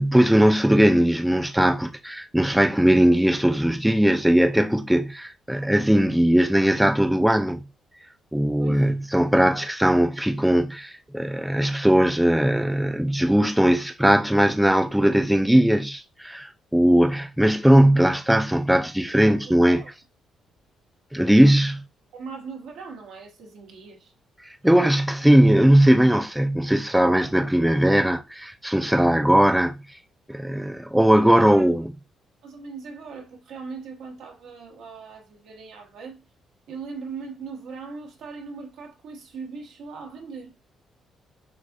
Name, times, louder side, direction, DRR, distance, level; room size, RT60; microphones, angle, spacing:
voice 1, 0.0-7.6 8.3-19.8 21.1-21.8 24.5-29.8 30.3-31.9, right 1 dB, 5° right, 0.4 m, -19 dB
voice 2, 8.6-9.0 19.1-19.9 22.1-24.1 31.2-31.5 32.4-36.2 36.7-40.5, right 5 dB, 80° right, 1.2 m, -39 dB
6.5 x 2.5 x 2.5 m
cardioid pair, 90°, 0 cm